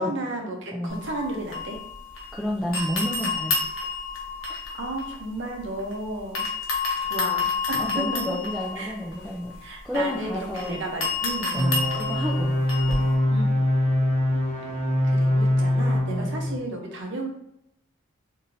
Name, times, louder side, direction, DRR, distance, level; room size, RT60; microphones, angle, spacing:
voice 1, 0.0-1.8 4.4-6.5 7.0-8.4 8.8-8.9 9.6-11.6 13.3-13.6 15.0-17.3, right 2 dB, 60° right, 1 dB, 0.7 m, -33 dB
voice 2, 0.7-1.0 2.3-3.6 7.8-9.5 9.8-10.8 11.5-12.6 16.1-16.3, left 1 dB, ahead, -6 dB, 0.4 m, -30 dB
sound 1, 0.9-2.4 2.7-5.9 6.4-13.1, left 4 dB, 70° left, 0.8 m, -30 dB
sound 2, 11.6-16.6, left 1 dB, 35° left, 0.7 m, -23 dB
3.1 x 2.7 x 2.6 m, 0.78 s
head